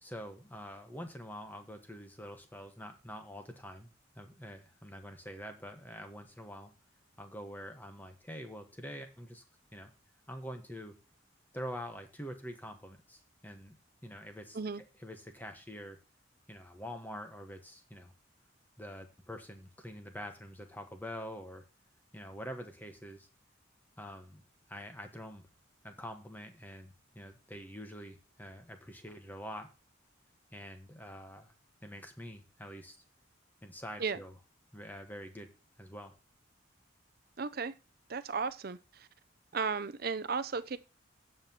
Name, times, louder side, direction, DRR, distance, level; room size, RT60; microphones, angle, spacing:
voice 1, 0.0-3.9 4.1-6.7 7.2-9.4 9.7-9.9 10.3-11.0 11.5-13.8 14.0-14.6 15.0-16.0 16.5-18.1 18.8-21.6 22.1-23.3 24.0-24.4 24.7-25.4 25.8-29.7 30.5-31.5 31.8-33.0 33.6-34.3 34.7-35.5 35.8-36.1, equal, 10° left, 1.3 m, -45 dB
voice 2, 37.4-37.7 38.1-39.1 39.5-40.8, right 5 dB, 50° right, 0.6 m, -35 dB
16.5 x 5.7 x 2.9 m
head